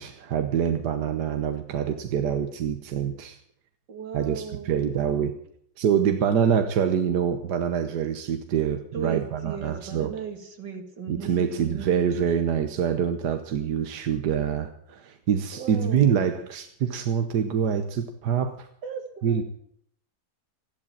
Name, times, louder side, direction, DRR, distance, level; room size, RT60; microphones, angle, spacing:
voice 1, 0.0-3.4 4.1-5.4 5.8-10.1 11.1-18.7 19.2-19.4, right 8 dB, 75° right, 7 dB, 1.6 m, -25 dB
voice 2, 3.9-4.8 8.9-11.9 15.5-16.3 18.8-19.4, right 6 dB, 90° right, 4 dB, 2.9 m, -36 dB
14.5 x 12.5 x 7.3 m, 0.66 s
omnidirectional pair, 1.8 m